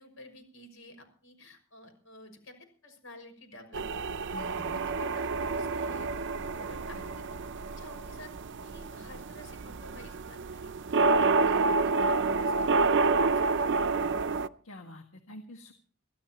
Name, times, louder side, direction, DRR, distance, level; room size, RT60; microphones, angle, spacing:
voice 1, 0.0-4.1 4.7-6.1 6.5-7.2 7.8-8.3 8.6-13.5, left 1 dB, 70° left, 6 dB, 6.0 m, -51 dB
sound 1, 3.7-14.5, right 3 dB, 60° right, 0.6 m, -28 dB
voice 2, 4.3-4.8 6.9-7.1 11.5-11.8 14.6-15.7, left 1 dB, 85° left, 4 dB, 1.7 m, -47 dB
24.0 x 15.0 x 3.0 m, 0.42 s
head